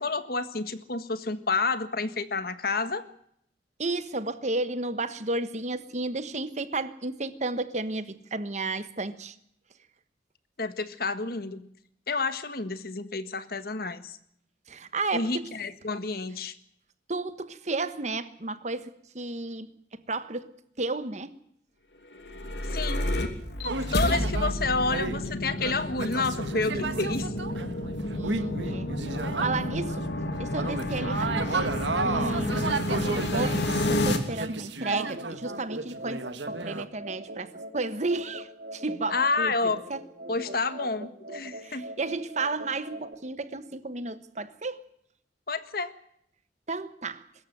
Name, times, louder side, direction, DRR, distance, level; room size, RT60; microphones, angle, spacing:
voice 1, 0.0-3.0 10.6-11.6 12.1-14.2 15.1-16.5 22.7-23.1 23.9-27.3 39.1-39.8 40.3-41.9 45.5-45.9, left 3 dB, 55° left, 1.6 m, -29 dB
voice 2, 3.8-9.3 14.7-15.5 17.1-20.5 20.8-21.3 28.1-28.9 29.4-30.1 30.4-40.0 41.6-44.8 46.7-47.2, right 3 dB, 40° right, 1.3 m, -33 dB
sound 1, 22.1-34.2, left 1 dB, 70° left, 2.9 m, -30 dB
sound 2, 23.6-24.5 24.9-30.0 30.3-36.8, right 3 dB, 85° right, 1.8 m, -33 dB
sound 3, 34.9-43.1, right 1 dB, 60° right, 3.2 m, -42 dB
22.5 x 14.0 x 9.3 m
head